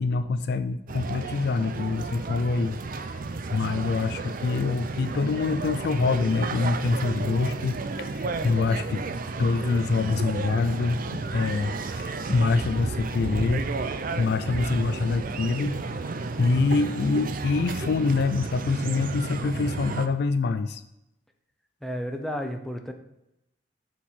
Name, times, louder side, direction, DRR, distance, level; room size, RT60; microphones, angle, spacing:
voice 1, 0.0-9.0 9.4-13.7 14.2-20.8, left 4 dB, 55° left, 12 dB, 0.4 m, -26 dB
sound 1, 0.9-20.1, right 3 dB, 45° right, 0.5 m, -32 dB
voice 2, 21.8-22.9, equal, ahead, 4 dB, 0.7 m, -32 dB
7.1 x 4.5 x 5.7 m, 0.86 s
head